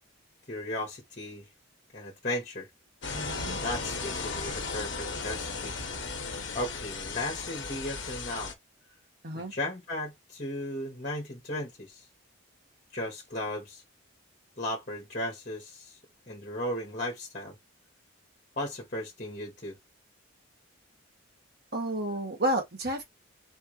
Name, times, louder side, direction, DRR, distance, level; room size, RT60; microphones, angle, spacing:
voice 1, 0.5-1.5 1.9-2.7 3.5-5.8 6.5-8.5 9.3-12.1 12.9-13.8 14.6-16.0 16.3-17.5 18.6-19.8, left 1 dB, 35° left, 1.7 m, -36 dB
sound 1, 3.0-8.5, left 4 dB, 55° left, 1.3 m, -36 dB
voice 2, 3.1-3.6 9.2-9.5 21.7-23.0, right 1 dB, 45° right, 1.5 m, -31 dB
4.4 x 3.6 x 3.2 m
head